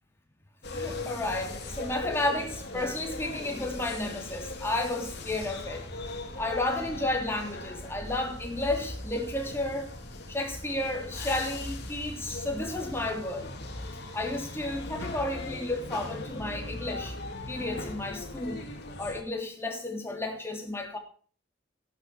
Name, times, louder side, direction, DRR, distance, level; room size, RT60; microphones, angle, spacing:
sound 1, 0.6-19.2, left 2 dB, 55° left, 3.1 m, -39 dB
voice 1, 0.7-5.9 6.4-9.9 10.3-13.5 14.1-17.2 17.5-18.7 19.0-21.0, left 2 dB, 10° left, 3.3 m, -32 dB
15.0 x 11.5 x 4.8 m
head